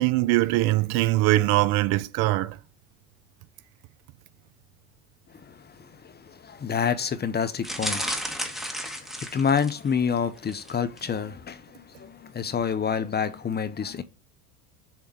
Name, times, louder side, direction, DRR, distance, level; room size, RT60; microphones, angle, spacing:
voice 1, 0.0-2.6, right 18 dB, 60° right, 0.6 m, -22 dB
voice 2, 5.3-8.2 8.5-14.0, left 7 dB, 25° left, 0.7 m, -28 dB
sound 1, 7.6-9.9 10.4-10.7 11.0-11.1, equal, ahead, 2.0 m, -32 dB
7.3 x 3.6 x 5.3 m
hypercardioid pair, 85°, 43 cm